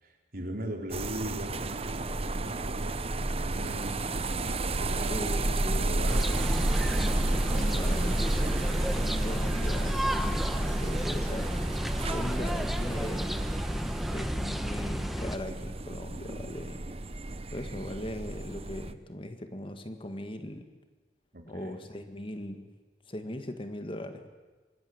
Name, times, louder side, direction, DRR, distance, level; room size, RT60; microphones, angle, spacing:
voice 1, 0.0-5.1 5.8-6.7 21.3-21.8, equal, 55° right, 2 dB, 4.3 m, -40 dB
sound 1, 0.9-18.9, right 2 dB, 35° right, 1.0 m, -32 dB
voice 2, 5.1-5.9 7.5-11.5 12.1-13.4 14.1-16.8 17.5-20.7 21.5-22.7 23.1-24.3, left 1 dB, 30° left, 8 dB, 1.8 m, -39 dB
sound 2, 6.1-15.4, equal, ahead, 1.0 m, -32 dB
25.5 x 20.0 x 9.7 m, 1.3 s
head